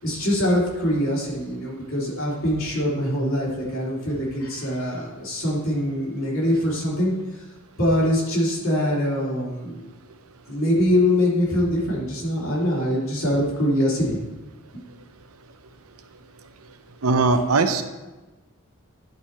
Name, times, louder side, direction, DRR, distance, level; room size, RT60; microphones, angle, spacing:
voice 1, 0.0-7.1 7.8-9.9 10.5-14.2 14.7-14.8, left 1 dB, 65° left, -5 dB, 2.9 m, -23 dB
voice 2, 17.0-17.8, right 3 dB, 85° right, 8 dB, 0.8 m, -19 dB
10.5 x 4.7 x 4.3 m, 1.1 s
head